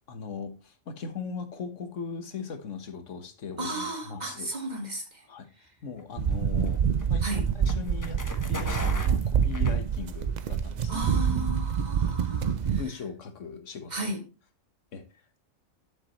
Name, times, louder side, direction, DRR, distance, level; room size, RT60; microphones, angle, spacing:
voice 1, 0.1-4.5 5.3-5.5 5.8-6.8 7.1-7.4 7.7-11.0 12.6-14.1 14.9-15.0, left 5 dB, 65° left, 1.6 m, -38 dB
voice 2, 3.6-5.2 7.2-7.5 10.9-12.8 13.9-14.2, right 1 dB, 30° right, 2.1 m, -34 dB
sound 1, 5.9-10.4, left 2 dB, 15° left, 0.9 m, -40 dB
sound 2, 6.2-12.8, right 7 dB, 70° right, 0.4 m, -26 dB
10.0 x 7.4 x 3.1 m
omnidirectional pair, 1.4 m